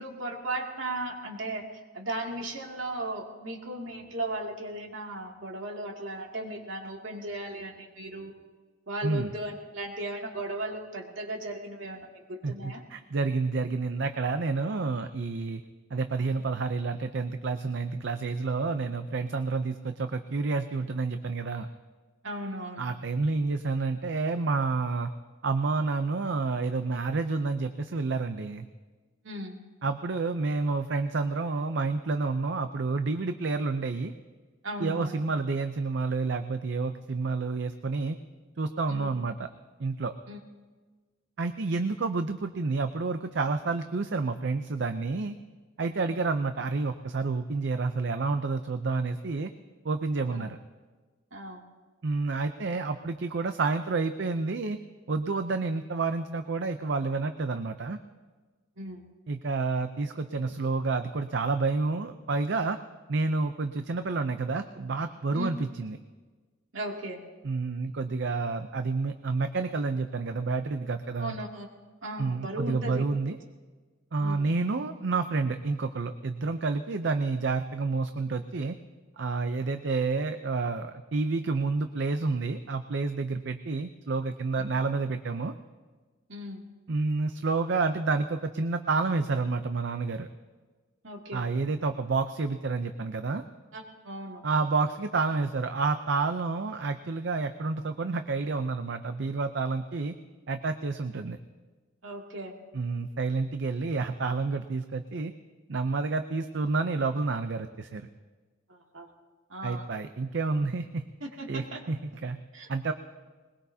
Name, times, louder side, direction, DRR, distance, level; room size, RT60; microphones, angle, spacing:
voice 1, 0.0-1.6 1.9-8.3 8.9-12.0 12.3-12.8 22.2-22.8 29.2-29.6 34.6-35.2 38.9-39.1 40.3-40.4 50.3-50.4 51.3-51.6 58.8-59.0 65.3-65.5 66.7-67.2 71.2-71.7 72.0-73.0 74.2-74.4 86.3-86.6 91.0-91.4 93.7-94.4 102.0-102.5 108.7-109.1 109.5-109.8 111.2-111.8 112.5-112.7, right 1 dB, 75° right, 0 dB, 2.5 m, -36 dB
voice 2, 9.0-9.3 12.4-15.6 15.9-21.7 22.8-25.1 25.4-28.7 29.8-34.1 34.8-38.2 38.6-39.5 39.8-40.1 41.4-45.4 45.8-49.5 49.8-50.6 52.0-54.8 55.1-58.0 59.3-62.8 63.1-66.0 67.4-71.4 72.2-73.4 74.1-78.8 79.2-85.5 86.9-90.3 91.3-93.4 94.4-100.1 100.5-101.4 102.7-105.3 105.7-108.1 109.6-111.0 111.5-112.4 112.7-112.9, right 3 dB, 60° right, 8 dB, 0.6 m, -29 dB
21.5 x 21.0 x 2.8 m, 1.4 s
head